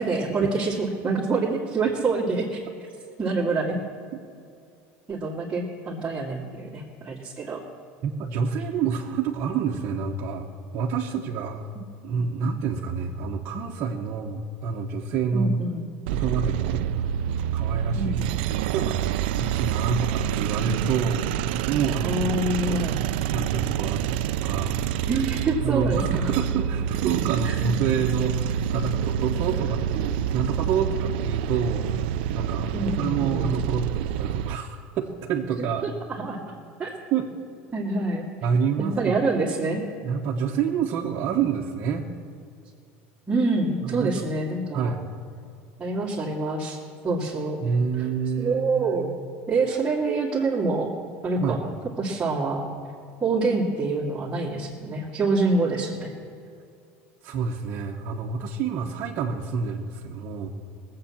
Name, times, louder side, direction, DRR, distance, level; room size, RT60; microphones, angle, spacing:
voice 1, 0.0-2.6 3.2-3.8 5.1-7.6 15.3-15.9 17.9-18.4 22.0-22.9 25.1-26.2 27.4-27.6 32.7-33.6 35.8-36.4 36.8-36.9 37.7-38.3 38.8-39.8 43.3-44.9 45.8-46.8 47.0-47.6 48.4-49.2 49.5-50.9 51.2-51.7 52.0-52.6 53.2-56.1, right 3 dB, 20° right, -8 dB, 2.3 m, -26 dB
voice 2, 8.0-10.5 10.7-11.7 12.0-15.6 16.1-17.1 17.5-18.1 18.4-19.1 19.4-22.3 22.7-22.9 23.3-25.1 25.6-35.8 37.1-37.3 38.4-39.1 40.0-42.1 43.8-44.2 44.7-45.1 47.6-49.2 51.3-51.6 57.2-60.5, right 6 dB, 50° right, -1 dB, 1.1 m, -28 dB
sound 1, 16.1-34.6, right 10 dB, 80° right, 0.4 m, -27 dB
18.5 x 7.7 x 7.2 m, 2.4 s
supercardioid pair, 120°, 5 cm